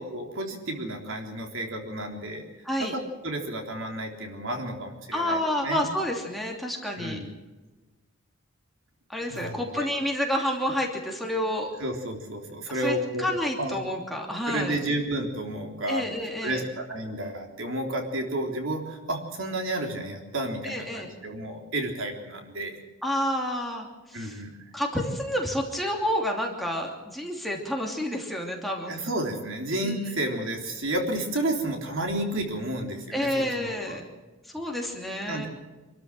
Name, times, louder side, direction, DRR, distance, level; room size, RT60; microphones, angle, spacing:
voice 1, 0.0-2.4 2.8-2.9 3.2-5.8 7.0-7.3 9.3-9.9 11.8-13.2 13.6-13.8 14.5-16.0 16.4-22.8 24.1-24.5 28.8-34.0 35.2-35.5, right 1 dB, 65° right, 3 dB, 3.6 m, -31 dB
voice 2, 5.1-7.2 9.1-11.7 12.8-14.8 15.9-16.6 20.6-21.1 23.0-24.4 24.7-29.0 29.8-30.0 33.1-34.0 34.5-35.5, left 1 dB, ahead, -1 dB, 2.9 m, -29 dB
27.0 x 13.5 x 7.8 m, 1.2 s
head